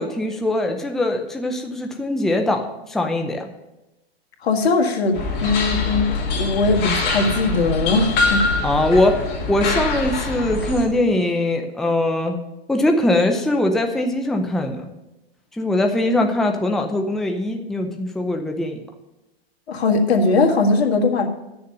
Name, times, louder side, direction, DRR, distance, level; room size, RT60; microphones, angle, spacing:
voice 1, 0.0-3.5 8.6-9.2 9.5-12.4 12.7-14.9 15.6-18.8, left 1 dB, ahead, 3 dB, 0.6 m, -21 dB
voice 2, 4.4-6.1 6.4-8.5 19.7-21.3, left 3 dB, 90° left, 3 dB, 1.8 m, -19 dB
sound 1, 5.1-10.9, left 3 dB, 35° left, 3.0 m, -24 dB
10.5 x 6.8 x 6.7 m, 0.95 s
hypercardioid pair, 140°, 31 cm